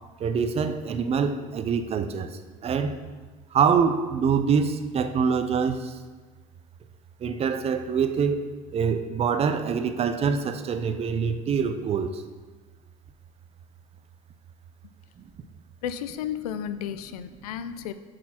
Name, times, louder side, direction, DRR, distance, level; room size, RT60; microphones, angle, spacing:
voice 1, 0.2-3.0 3.5-6.0 7.2-12.2 15.2-15.3, right 6 dB, 35° right, 9 dB, 0.5 m, -25 dB
voice 2, 15.8-17.9, left 9 dB, 90° left, 11 dB, 0.4 m, -33 dB
6.1 x 4.3 x 4.2 m, 1.3 s
hypercardioid pair, 85°, 19 cm